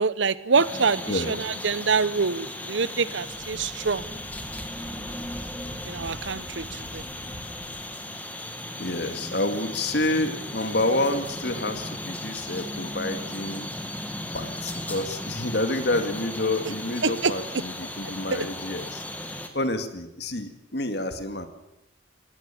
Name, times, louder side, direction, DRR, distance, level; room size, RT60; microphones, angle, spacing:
voice 1, 0.0-4.0 5.8-7.0 17.0-17.3, right 5 dB, 75° right, 17 dB, 0.9 m, -25 dB
sound 1, 0.5-19.5, left 1 dB, 10° left, 1.8 m, -36 dB
voice 2, 1.1-1.4 8.8-13.7 14.3-19.0 19.5-21.5, left 2 dB, 60° left, 8 dB, 2.1 m, -28 dB
Wind, 3.1-7.9, equal, 35° right, 4.4 m, -43 dB
19.0 x 16.5 x 8.5 m, 0.89 s
head